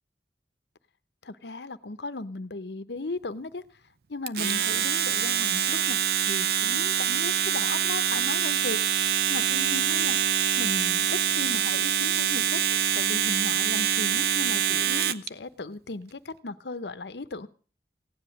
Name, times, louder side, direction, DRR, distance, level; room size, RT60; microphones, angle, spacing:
voice 1, 1.2-3.6 4.1-8.8 9.3-10.2 10.6-17.5, left 3 dB, 80° left, 0.9 m, -36 dB
Domestic sounds home sounds, 4.3-15.3, right 9 dB, 60° right, 0.6 m, -25 dB
16.5 x 10.0 x 6.4 m
head